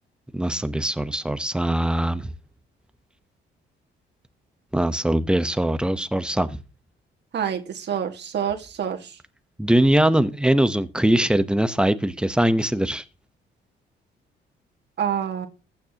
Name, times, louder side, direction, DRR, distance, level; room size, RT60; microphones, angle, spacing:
voice 1, 0.3-2.3 4.7-6.6 9.6-13.0, right 1 dB, 5° right, 0.9 m, -21 dB
voice 2, 7.3-9.2 15.0-15.5, right 8 dB, 60° right, 1.9 m, -27 dB
15.0 x 9.1 x 2.9 m
cardioid pair, 90°, 20 cm